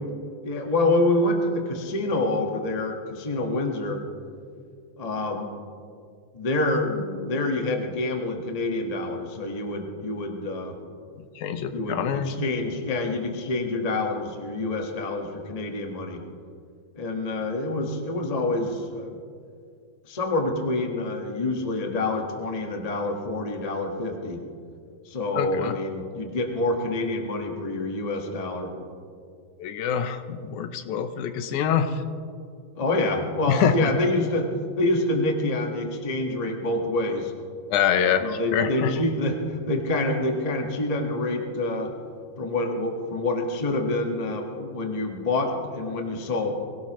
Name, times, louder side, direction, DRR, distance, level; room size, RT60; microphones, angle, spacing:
voice 1, 0.4-4.0 5.0-5.5 6.3-10.8 11.7-16.2 16.9-19.2 20.0-24.4 25.0-28.7 32.7-34.5 34.8-37.3 38.2-41.9 42.4-46.5, left 2 dB, 35° left, 2 dB, 0.6 m, -27 dB
voice 2, 11.4-12.5 25.4-25.7 29.6-32.0 33.5-33.9 37.7-38.2 38.5-38.9, left 8 dB, 80° left, 9 dB, 2.2 m, -25 dB
23.5 x 17.0 x 3.1 m, 2.3 s
omnidirectional pair, 3.4 m